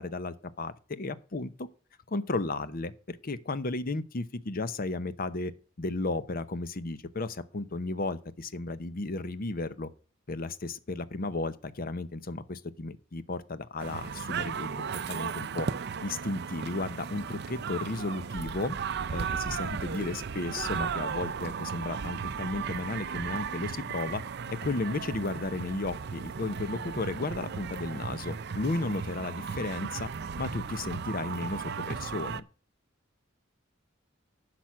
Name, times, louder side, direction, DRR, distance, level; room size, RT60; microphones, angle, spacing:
voice 1, 0.0-1.7 2.1-5.5 5.8-9.9 10.3-15.7 16.0-18.8 19.1-24.2 24.5-30.1 30.4-32.4, left 2 dB, 45° left, 0.8 m, -34 dB
sound 1, 13.8-32.4, right 6 dB, 55° right, 0.5 m, -36 dB
10.5 x 6.1 x 6.1 m
head